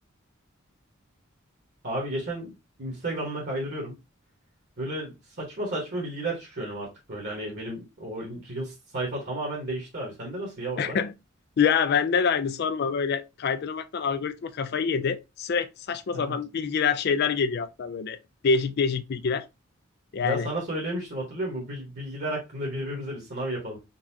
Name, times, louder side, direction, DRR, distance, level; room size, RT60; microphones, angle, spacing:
voice 1, 1.8-4.0 4.8-11.0 16.1-16.4 20.2-23.8, right 1 dB, 55° right, 1.2 m, -33 dB
voice 2, 10.8-11.1 11.6-18.2 18.4-19.5 20.1-20.5, left 6 dB, 50° left, 0.4 m, -26 dB
3.9 x 2.3 x 2.7 m
head